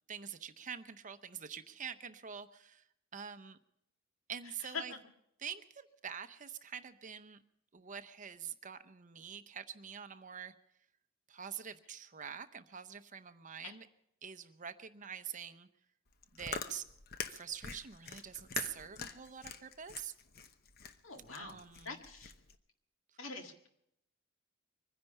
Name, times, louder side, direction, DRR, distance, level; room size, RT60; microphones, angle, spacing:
voice 1, 0.1-2.9 3.1-3.6 4.3-4.9 5.4-7.4 7.7-10.5 11.3-13.9 14.2-15.7 16.3-16.8 17.3-20.1 21.4-22.0, right 8 dB, 40° right, 11 dB, 0.8 m, -45 dB
voice 2, 4.6-5.0 13.6-13.8 21.0-21.6 21.8-22.3 23.2-23.7, left 4 dB, 75° left, 5 dB, 1.9 m, -44 dB
Chewing mastication, 16.1-22.5, left 5 dB, 50° left, 0.9 m, -45 dB
23.5 x 10.5 x 5.5 m, 0.77 s
head